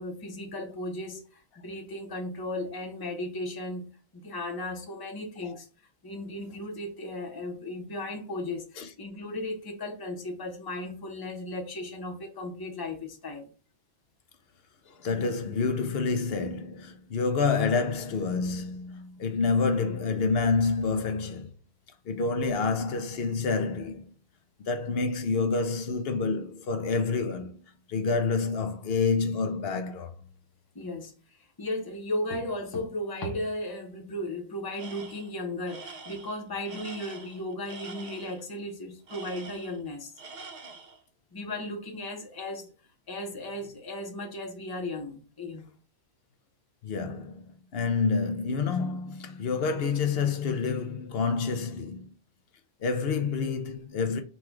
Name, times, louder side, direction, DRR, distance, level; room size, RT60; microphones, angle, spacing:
voice 1, 0.0-5.7 6.0-13.5 30.7-31.1 31.6-40.1 41.3-42.7 43.1-45.6, left 1 dB, 20° left, 0.9 m, -35 dB
voice 2, 14.9-21.5 22.1-24.0 24.7-27.6 27.9-30.1 46.8-52.1 52.8-54.2, left 4 dB, 70° left, 0.8 m, -28 dB
Tools, 34.8-35.3 35.7-38.4 39.1-39.9 40.2-41.0, right 4 dB, 55° right, 0.7 m, -45 dB
4.2 x 2.4 x 4.6 m
omnidirectional pair, 1.1 m